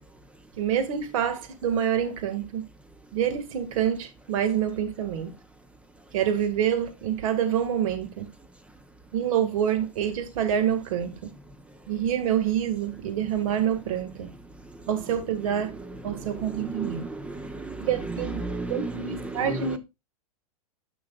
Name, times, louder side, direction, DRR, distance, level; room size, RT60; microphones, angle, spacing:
voice 1, 0.6-2.6 3.1-5.3 6.1-8.3 9.1-11.3 11.9-14.3 14.9-15.7 16.0-17.1 17.8-18.4 18.7-19.8, right 9 dB, 60° right, 2.0 m, -27 dB
voice 2, 16.5-17.7 18.0-19.8, right 2 dB, 5° right, 0.8 m, -34 dB
10.5 x 6.2 x 2.5 m
hypercardioid pair, 130°, 19 cm